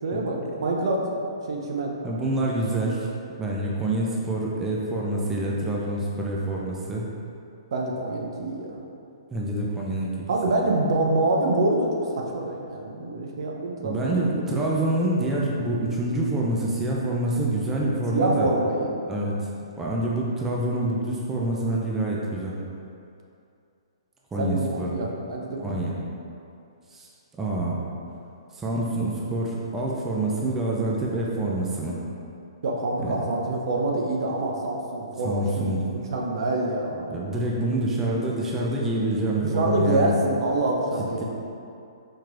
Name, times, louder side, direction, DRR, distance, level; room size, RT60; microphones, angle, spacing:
voice 1, 0.0-1.9 7.7-8.8 10.3-14.3 18.1-19.0 24.4-25.9 32.6-37.1 39.4-41.2, right 2 dB, 60° right, -1 dB, 0.5 m, -26 dB
voice 2, 2.0-3.1 3.4-7.0 9.3-10.3 13.8-18.5 19.1-19.3 19.8-22.5 24.3-25.0 25.6-26.0 26.9-27.1 27.4-27.8 28.5-32.0 33.0-33.2 35.2-35.9 37.1-40.1, right 1 dB, 10° right, -4 dB, 0.4 m, -26 dB
4.5 x 3.0 x 2.5 m, 2.6 s
hypercardioid pair, 135°, 3 cm